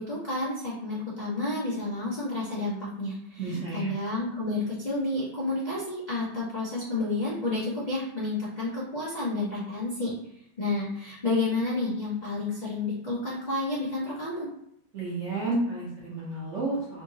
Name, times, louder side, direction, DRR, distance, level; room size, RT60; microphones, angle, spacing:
voice 1, 0.0-10.1 10.6-14.5, left 2 dB, 75° left, -8 dB, 0.4 m, -30 dB
voice 2, 3.4-3.9 14.9-17.0, right 2 dB, 55° right, -7 dB, 0.9 m, -31 dB
3.5 x 2.8 x 2.7 m, 0.73 s
omnidirectional pair, 2.2 m